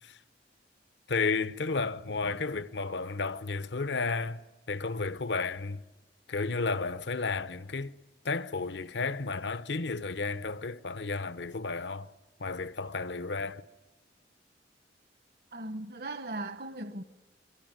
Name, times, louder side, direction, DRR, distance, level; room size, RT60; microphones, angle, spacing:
voice 1, 1.1-4.4 4.7-5.8 6.3-7.9 8.2-12.1 12.4-13.6, left 4 dB, 75° left, 0.9 m, -32 dB
voice 2, 15.5-17.0, right 2 dB, 60° right, 1.1 m, -38 dB
24.5 x 23.5 x 9.3 m
head